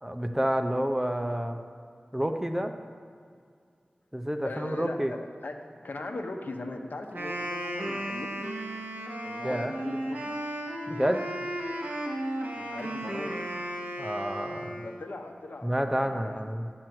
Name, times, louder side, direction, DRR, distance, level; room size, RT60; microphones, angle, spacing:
voice 1, 0.0-1.6 2.1-2.7 4.1-5.1 9.4-9.7 10.9-11.3 14.0-14.8 15.6-16.7, equal, 10° right, 6 dB, 0.7 m, -29 dB
voice 2, 4.4-8.4 9.2-10.3 12.5-13.4 14.8-16.4, left 2 dB, 70° left, 4 dB, 0.9 m, -39 dB
Wind instrument woodwind instrument, 7.0-15.1, right 1 dB, 75° right, 1.7 m, -35 dB
10.5 x 6.1 x 7.8 m, 2.2 s
wide cardioid pair, 70°, 3 cm